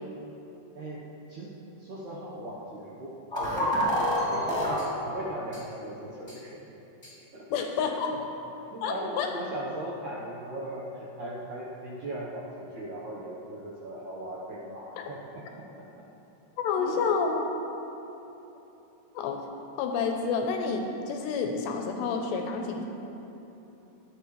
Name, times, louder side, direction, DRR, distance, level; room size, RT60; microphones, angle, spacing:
voice 1, 1.8-6.7 7.3-7.7 8.7-16.1 16.8-17.0, right 1 dB, 70° right, -7 dB, 1.9 m, -38 dB
sound 1, 3.3-4.8 5.5-5.6 6.3-6.4 7.0-7.1, equal, 10° left, 2.2 m, -27 dB
voice 2, 7.5-8.1 8.8-9.3 16.6-17.5 19.2-19.4 19.8-22.9, left 5 dB, 80° left, 3 dB, 2.8 m, -29 dB
17.5 x 10.5 x 3.3 m, 3.0 s
omnidirectional pair, 5.3 m